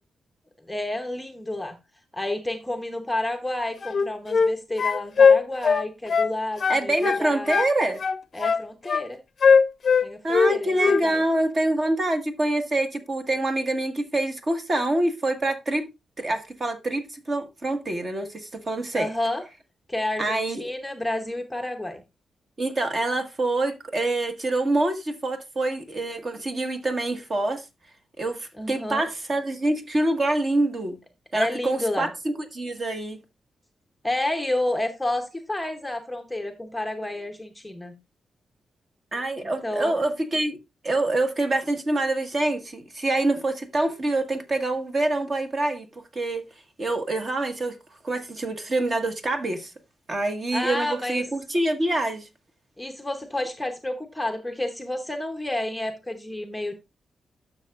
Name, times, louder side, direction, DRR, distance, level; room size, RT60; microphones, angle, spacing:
voice 1, 0.7-1.8 2.1-7.5 8.3-9.2 10.0-10.2 10.5-11.2 18.9-19.4 19.9-22.0 28.6-29.1 31.3-32.1 34.0-37.9 39.6-40.0 50.5-51.2 52.8-56.7, left 1 dB, 5° left, 0.8 m, -30 dB
sound 1, 3.8-4.5 4.8-6.3 6.6-7.7 8.0-9.0 9.4-10.5 10.8-11.0, left 5 dB, 45° left, 0.7 m, -19 dB
voice 2, 6.7-8.0 10.2-15.9 16.2-19.1 20.2-20.7 22.6-27.6 28.2-31.0 31.3-33.2 39.1-40.6 40.8-45.9 46.1-46.4 46.8-47.8 48.0-49.7 50.1-52.3, right 2 dB, 35° right, 1.5 m, -26 dB
11.5 x 6.6 x 2.4 m
wide cardioid pair, 150°, 0 cm